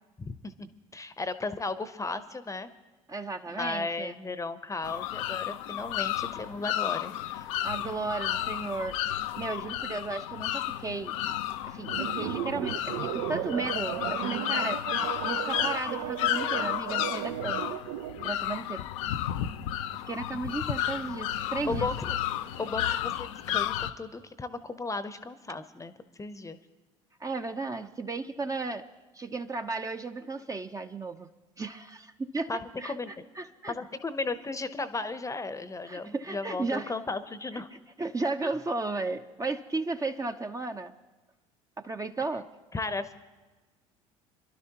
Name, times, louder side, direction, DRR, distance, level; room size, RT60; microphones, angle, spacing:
voice 1, 0.2-2.7 3.5-7.5 21.6-22.1 22.6-26.6 32.5-32.6 32.8-33.1 33.7-37.7 38.4-38.5 42.7-43.1, left 3 dB, 20° left, 12 dB, 0.8 m, -35 dB
voice 2, 3.1-4.1 7.6-9.0 9.4-11.2 11.6-14.8 15.2-17.7 18.2-18.9 19.9-21.9 27.2-28.8 29.1-31.3 31.6-33.7 35.9-36.9 38.0-40.9 41.8-42.5, right 3 dB, 20° right, 7 dB, 0.7 m, -34 dB
sound 1, 4.8-23.9, left 12 dB, 70° left, 0.6 m, -32 dB
sound 2, 11.9-18.3, right 13 dB, 65° right, 0.5 m, -35 dB
26.5 x 11.5 x 2.9 m, 1.2 s
hypercardioid pair, 65°, 17 cm